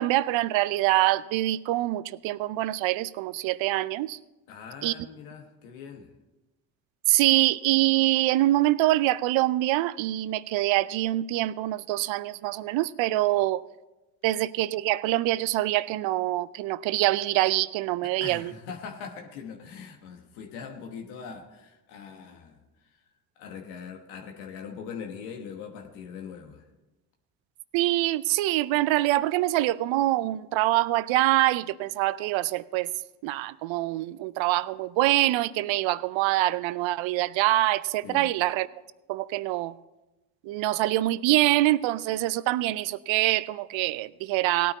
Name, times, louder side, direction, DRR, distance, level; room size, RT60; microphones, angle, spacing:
voice 1, 0.0-4.2 4.8-4.9 7.1-13.6 14.2-18.5 27.7-32.9 33.2-38.7 39.1-39.7 40.4-44.7, right 16 dB, 65° right, 18 dB, 0.6 m, -25 dB
voice 2, 4.5-6.1 18.0-23.0 23.4-26.7 38.0-38.3, left 6 dB, 90° left, 3 dB, 1.3 m, -41 dB
17.0 x 9.3 x 4.1 m, 1.0 s
supercardioid pair, 70°, 49 cm